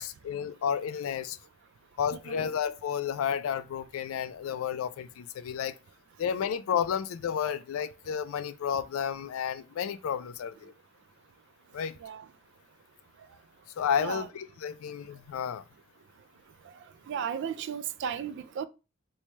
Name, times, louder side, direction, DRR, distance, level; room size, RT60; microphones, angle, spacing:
voice 1, 0.0-1.4 2.0-5.8 6.2-10.7 11.7-12.0 13.8-15.6, left 8 dB, 75° left, 0.3 m, -31 dB
voice 2, 2.1-2.5 12.0-12.3 14.0-14.3 16.7-16.8 17.1-18.7, right 7 dB, 60° right, 0.3 m, -35 dB
3.1 x 2.2 x 4.0 m
head